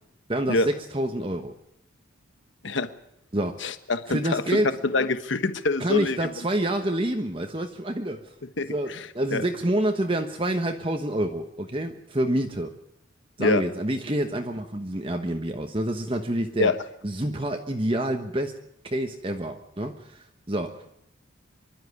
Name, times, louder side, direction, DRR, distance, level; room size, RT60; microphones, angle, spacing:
voice 1, 0.3-1.5 3.3-3.6 4.1-4.7 5.8-8.3 8.7-12.7 13.4-16.7 17.0-20.8, right 1 dB, 25° right, 5 dB, 1.2 m, -28 dB
voice 2, 3.6-4.6 4.9-6.3 8.6-9.4 13.4-13.6 16.6-16.7, left 3 dB, 65° left, 11 dB, 1.2 m, -25 dB
25.0 x 12.5 x 9.6 m, 0.79 s
head